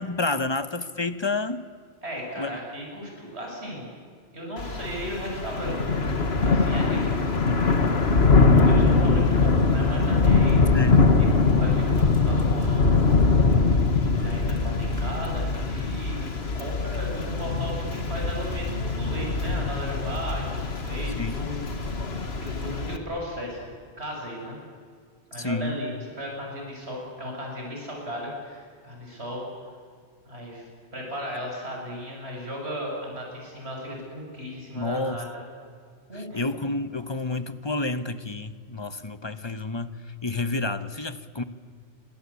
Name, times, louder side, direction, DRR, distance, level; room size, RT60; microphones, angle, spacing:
voice 1, 0.0-1.6 2.4-2.6 10.7-11.0 21.2-21.4 25.4-25.7 34.7-35.2 36.1-41.4, left 2 dB, 25° left, 11 dB, 1.1 m, -29 dB
voice 2, 2.0-3.9 4.3-7.1 8.4-10.8 11.2-12.9 13.5-13.6 14.2-21.7 22.4-23.7 24.0-24.6 25.3-25.9 26.2-29.4 30.3-35.4 36.1-36.4, equal, 65° right, -1 dB, 6.9 m, -36 dB
Thunder / Rain, 4.6-23.0, left 4 dB, 60° left, 2.1 m, -22 dB
28.5 x 24.5 x 8.4 m, 2.1 s
omnidirectional pair, 1.2 m